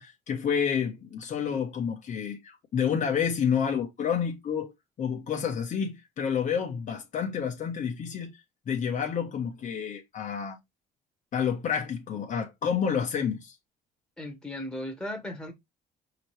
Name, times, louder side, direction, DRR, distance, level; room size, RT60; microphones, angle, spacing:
voice 1, 0.0-10.6 11.3-13.6, left 7 dB, 50° left, 1.1 m, -29 dB
voice 2, 14.2-15.5, left 1 dB, 5° left, 1.5 m, -36 dB
5.0 x 2.9 x 3.2 m
cardioid pair, 110°, 17 cm